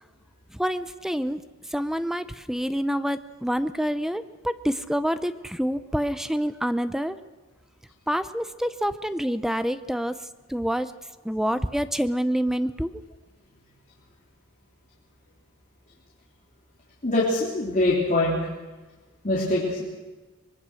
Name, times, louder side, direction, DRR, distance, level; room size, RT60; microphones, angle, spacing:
voice 1, 0.5-1.4 1.7-7.2 8.1-10.1 10.5-10.9 11.2-12.9, equal, ahead, 12 dB, 0.6 m, -27 dB
voice 2, 17.0-18.4 19.2-19.8, left 2 dB, 35° left, -7 dB, 3.7 m, -23 dB
23.5 x 21.5 x 6.4 m, 1.2 s
head